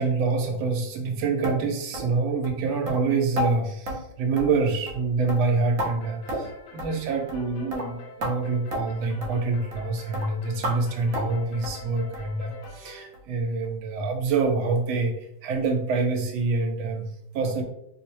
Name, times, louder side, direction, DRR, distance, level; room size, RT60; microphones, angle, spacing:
voice 1, 0.0-17.6, right 4 dB, 90° right, 3 dB, 1.5 m, -26 dB
sound 1, 1.4-1.6 1.9-2.1 2.4-2.6 2.9-3.0 3.4-3.5 3.9-4.0 4.4-4.6 4.9-5.0 5.3-5.9 6.3-6.5 6.8-6.9 7.3-7.4 7.7-7.9 8.2-8.3 8.7-8.8 9.2-9.3 9.7-9.9 10.1-10.3 10.6-10.8 11.1-11.3 11.6-11.8 12.1-12.3 12.6-12.7 13.1-13.2 13.6-13.7, equal, 60° right, 0.9 m, -31 dB
sound 2, 6.0-13.1, left 2 dB, 90° left, 1.4 m, -46 dB
3.4 x 2.0 x 4.3 m, 0.75 s
omnidirectional pair, 2.1 m